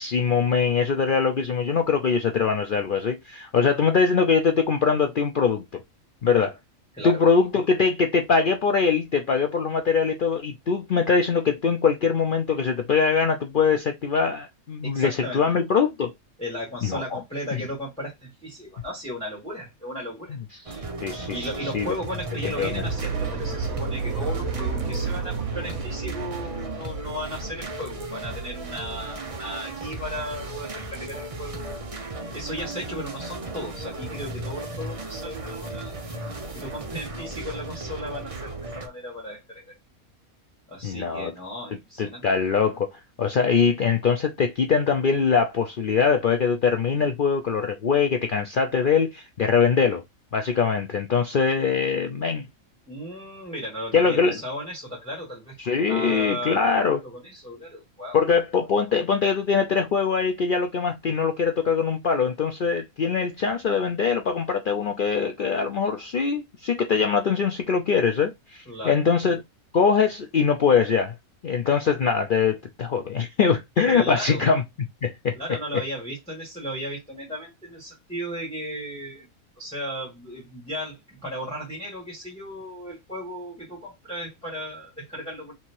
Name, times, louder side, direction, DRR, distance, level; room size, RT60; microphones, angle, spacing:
voice 1, 0.0-5.8 6.2-6.6 7.0-16.1 16.8-17.2 17.5-17.6 20.3-20.4 20.7-21.9 22.4-22.9 40.8-41.3 42.0-42.9 43.2-50.0 50.3-52.4 53.9-54.4 55.6-57.0 58.1-69.4 69.7-71.1 71.4-74.6 75.0-75.4, left 5 dB, 60° left, 0.5 m, -22 dB
voice 2, 14.8-15.4 16.4-20.4 21.3-31.8 32.3-35.9 36.5-39.8 40.7-42.5 52.9-55.6 55.9-56.7 57.0-58.2 68.7-69.0 73.9-74.4 75.4-79.3 79.6-85.5, equal, 5° left, 1.7 m, -35 dB
sound 1, 20.7-38.9, right 2 dB, 30° right, 0.7 m, -35 dB
sound 2, 22.3-27.5, right 5 dB, 75° right, 1.4 m, -31 dB
3.5 x 2.9 x 4.4 m
omnidirectional pair, 1.5 m